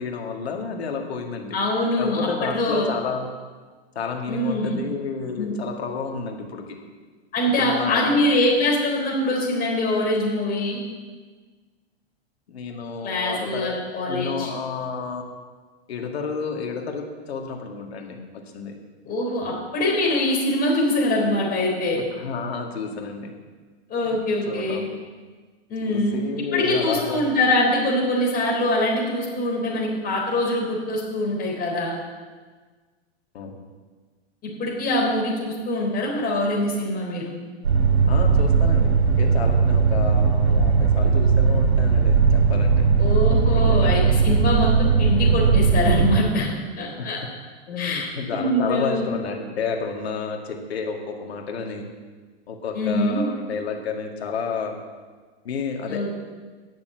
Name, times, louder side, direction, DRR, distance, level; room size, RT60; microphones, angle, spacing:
voice 1, 0.0-1.6 2.0-3.3 4.0-6.6 7.6-8.2 12.5-13.8 14.1-15.2 15.9-18.2 18.5-18.7 22.1-23.3 24.0-24.2 24.5-24.9 25.8-27.3 33.3-33.5 38.1-42.9 43.4-44.1 47.0-47.2 47.7-51.9 52.5-54.8 55.4-56.1, left 5 dB, 70° left, 2 dB, 2.0 m, -30 dB
voice 2, 1.5-2.3 2.5-2.8 4.3-4.8 5.4-5.5 7.3-10.8 13.0-14.5 19.1-22.0 23.9-24.8 25.7-26.2 26.5-31.9 34.6-37.3 43.0-47.2 47.8-49.0 52.7-53.3 55.9-56.1, left 1 dB, 25° left, -2 dB, 4.0 m, -23 dB
sound 1, 37.6-46.2, right 5 dB, 85° right, 2.1 m, -18 dB
9.8 x 6.9 x 8.2 m, 1.4 s
hypercardioid pair, 110°, 32 cm